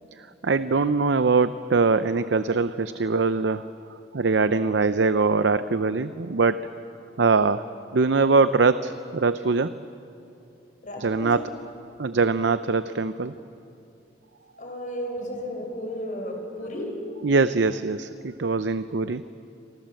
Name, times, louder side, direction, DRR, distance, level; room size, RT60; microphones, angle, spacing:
voice 1, 0.4-3.7 4.1-6.7 7.2-7.6 7.9-9.8 11.0-11.5 12.0-13.3 17.2-19.3, right 4 dB, 85° right, 12 dB, 0.6 m, -22 dB
voice 2, 10.8-11.6 13.3-13.4 14.6-16.9, equal, 45° left, 2 dB, 5.4 m, -34 dB
28.5 x 24.0 x 7.8 m, 2.8 s
head